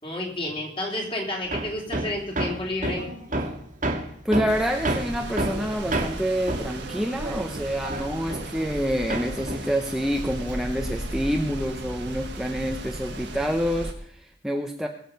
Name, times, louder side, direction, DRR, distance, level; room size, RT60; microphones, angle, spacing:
voice 1, 0.0-3.1, left 1 dB, 30° left, -1 dB, 3.4 m, -30 dB
Hammer, 1.5-8.8 9.1-10.9, right 1 dB, 45° right, 1.8 m, -30 dB
voice 2, 4.2-14.9, equal, 5° right, 2 dB, 0.8 m, -27 dB
sound 1, 4.5-13.9, right 1 dB, 65° right, 1.5 m, -36 dB
21.0 x 7.5 x 5.3 m, 0.68 s
head